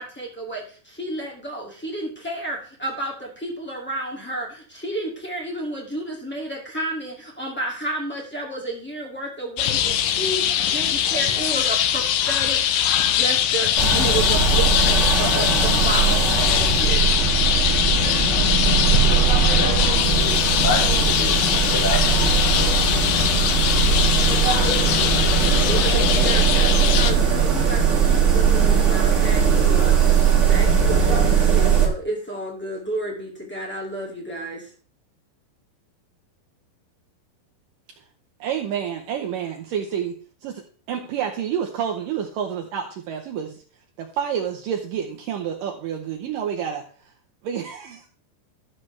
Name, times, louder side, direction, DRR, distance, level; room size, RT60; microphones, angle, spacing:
voice 1, 0.0-12.6 13.0-17.0 25.6-34.7, right 2 dB, 10° left, -2 dB, 0.5 m, -31 dB
sound 1, 9.6-27.1, left 10 dB, 80° left, 2.0 m, -22 dB
sound 2, 13.7-31.9, right 6 dB, 30° right, 1.3 m, -19 dB
voice 2, 19.4-21.4 21.7-22.7, left 2 dB, 45° left, 1 dB, 1.9 m, -30 dB
voice 3, 38.4-40.1 40.4-43.6 44.0-46.8 47.4-48.1, right 8 dB, 80° right, 3 dB, 2.0 m, -29 dB
13.0 x 7.5 x 3.3 m, 0.43 s
omnidirectional pair, 4.9 m